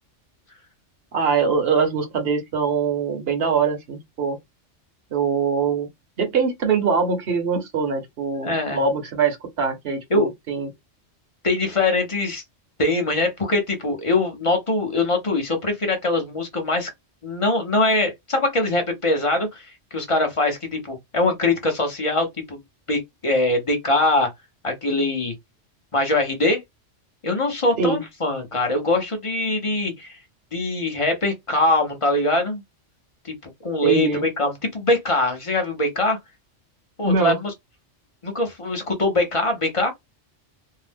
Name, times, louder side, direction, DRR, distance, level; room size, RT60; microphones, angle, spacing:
voice 1, 1.1-4.4 5.1-5.9 6.2-10.7 27.8-28.0 33.8-34.2 37.0-37.4, right 5 dB, 55° right, 0.9 m, -23 dB
voice 2, 8.4-8.8 10.1-10.3 11.4-12.4 12.8-16.9 17.2-22.6 22.9-24.3 24.6-25.3 25.9-26.6 27.2-30.2 30.5-32.6 33.6-36.2 37.0-37.5 38.2-39.9, left 2 dB, 30° left, 0.7 m, -22 dB
2.7 x 2.0 x 3.3 m
omnidirectional pair, 1.3 m